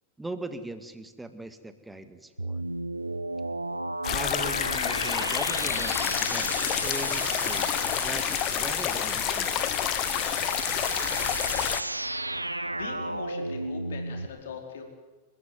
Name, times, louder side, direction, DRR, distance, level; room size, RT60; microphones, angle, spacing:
voice 1, 0.2-2.6 4.1-9.8, right 2 dB, 5° right, 9 dB, 2.0 m, -40 dB
sound 1, 2.4-14.3, right 2 dB, 85° right, 0.9 m, -33 dB
sound 2, 4.0-11.8, left 14 dB, 35° left, 1.2 m, -29 dB
voice 2, 12.3-14.8, left 6 dB, 60° left, 2 dB, 4.8 m, -41 dB
28.0 x 15.5 x 9.5 m, 1.2 s
figure-of-eight pair, 90°, 0 cm